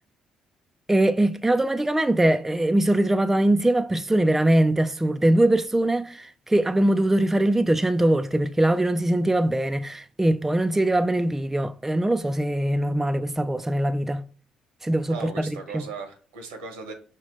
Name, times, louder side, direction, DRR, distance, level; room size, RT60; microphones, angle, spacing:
voice 1, 0.9-14.2 14.8-15.5, right 1 dB, 10° right, 0.4 m, -22 dB
voice 2, 15.1-16.9, right 4 dB, 85° right, 1.0 m, -37 dB
5.9 x 2.1 x 3.6 m
hypercardioid pair, 50°, 3 cm